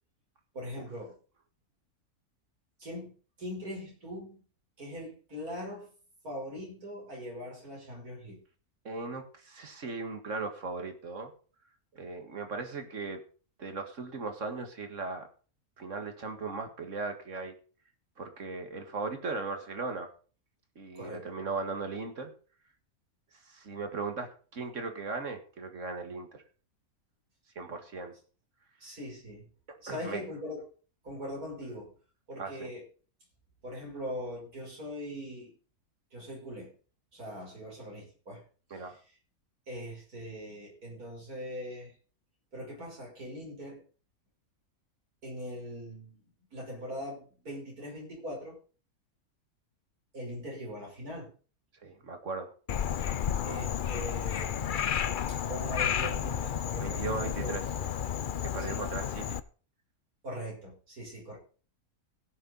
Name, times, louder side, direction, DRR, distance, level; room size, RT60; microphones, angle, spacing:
voice 1, 0.5-1.1 2.8-3.1 3.4-4.4 4.8-5.9 6.2-8.4 20.9-21.2 28.8-29.5 29.8-30.6 31.0-31.9 32.3-32.8 33.6-35.5 36.1-36.7 37.1-38.4 38.8-39.0 39.7-41.9 42.5-43.8 45.2-46.2 46.5-48.6 50.1-51.3 53.4-55.0 55.3-57.9 58.6-58.8 60.2-61.4, equal, 80° right, -2 dB, 6.3 m, -41 dB
voice 2, 8.8-11.3 11.9-13.2 13.6-15.3 15.8-17.5 18.2-20.1 20.8-22.3 23.4-26.4 27.6-28.1 29.9-30.3 32.4-32.7 38.7-39.0 51.8-52.5 56.8-57.6 58.4-59.4, right 4 dB, 55° right, 7 dB, 2.0 m, -37 dB
Frog, 52.7-59.4, left 8 dB, 55° left, 0.5 m, -32 dB
16.5 x 6.7 x 5.4 m, 0.39 s
omnidirectional pair, 1.6 m